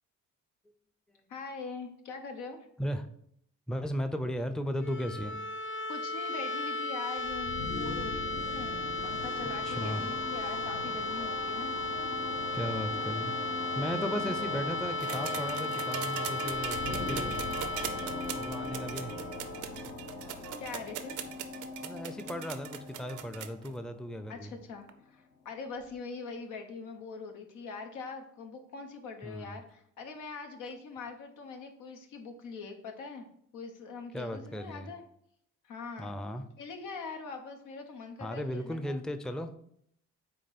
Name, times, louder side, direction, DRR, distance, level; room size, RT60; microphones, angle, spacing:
voice 1, 1.3-2.7 5.9-11.7 20.6-21.2 24.3-33.3 33.5-35.0 35.6-36.1 36.6-39.0, left 4 dB, 85° left, 4 dB, 1.0 m, -43 dB
voice 2, 3.7-5.3 9.6-10.0 12.5-17.4 18.4-19.1 21.8-24.5 29.2-29.6 34.1-34.9 36.0-36.4 38.2-39.5, equal, ahead, 9 dB, 0.5 m, -36 dB
sound 1, 4.7-20.5, left 2 dB, 45° left, 0.7 m, -35 dB
sound 2, 7.2-24.8, left 3 dB, 65° left, 1.2 m, -41 dB
sound 3, 15.0-23.7 24.9-25.0, right 10 dB, 80° right, 0.7 m, -40 dB
8.5 x 3.0 x 4.2 m, 0.70 s
cardioid pair, 90°, 30 cm